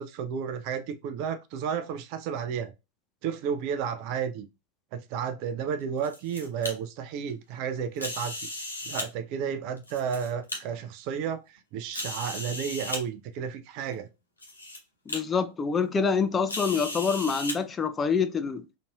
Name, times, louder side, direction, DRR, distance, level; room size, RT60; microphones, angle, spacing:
voice 1, 0.0-2.7 3.2-4.5 4.9-8.3 8.9-14.1, right 7 dB, 45° right, 0.5 m, -32 dB
sound 1, 5.8-6.7 8.0-9.1 9.8-10.6 11.2-11.3 11.9-13.0 13.9-14.0 14.4-14.8 15.1-15.2 16.5-17.6, left 2 dB, 80° left, 1.0 m, -35 dB
voice 2, 15.1-18.7, left 5 dB, 20° left, 0.4 m, -26 dB
3.9 x 2.7 x 2.3 m
figure-of-eight pair, 90°, 0 cm